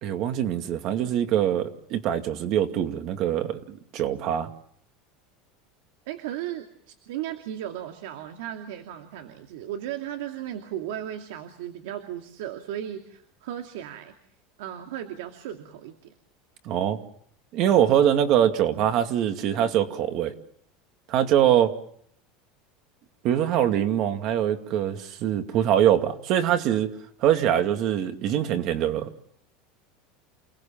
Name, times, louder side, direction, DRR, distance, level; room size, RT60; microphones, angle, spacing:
voice 1, 0.0-4.5 16.7-17.0 17.5-20.3 21.1-21.7 23.2-26.9 27.2-29.1, right 10 dB, 40° right, 7 dB, 2.3 m, -23 dB
voice 2, 6.1-14.2 14.6-16.1, right 11 dB, 75° right, 6 dB, 2.5 m, -36 dB
29.0 x 19.5 x 7.3 m, 0.67 s
supercardioid pair, 175°, 0 cm